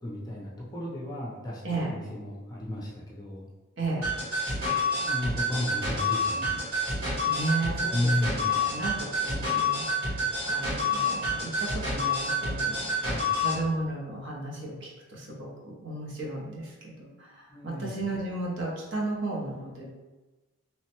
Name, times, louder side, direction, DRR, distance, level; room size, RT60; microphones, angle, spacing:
voice 1, 0.0-3.5 4.9-6.7 7.9-8.6 13.0-13.4 17.5-18.0, left 1 dB, 20° left, -5 dB, 0.5 m, -33 dB
voice 2, 1.6-1.9 3.8-4.1 7.3-19.9, right 2 dB, 60° right, -4 dB, 0.7 m, -34 dB
sound 1, 4.0-13.6, left 2 dB, 90° right, 1.5 m, -28 dB
3.0 x 2.1 x 2.9 m, 1.2 s
head